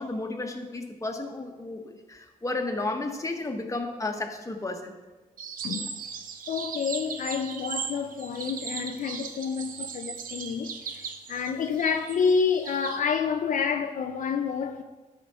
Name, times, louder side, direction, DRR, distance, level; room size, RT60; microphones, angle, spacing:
voice 1, 0.0-4.9, left 2 dB, 20° left, 1.3 m, -33 dB
sound 1, 5.4-13.0, right 6 dB, 70° right, 0.8 m, -38 dB
voice 2, 5.6-6.0 6.5-14.8, left 6 dB, 60° left, 0.6 m, -28 dB
12.5 x 5.1 x 4.3 m
cardioid pair, 75°, 15 cm